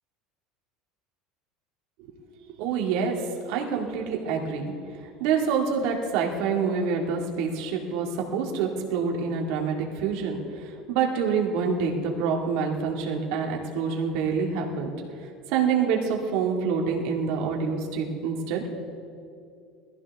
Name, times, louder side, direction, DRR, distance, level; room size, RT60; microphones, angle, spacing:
voice 1, 2.6-3.2 3.5-4.9 5.2-10.4 10.9-14.9 15.5-18.6, right 6 dB, 65° right, 0 dB, 2.2 m, -26 dB
21.5 x 15.0 x 3.6 m, 2.4 s
cardioid pair, 145°, 0 cm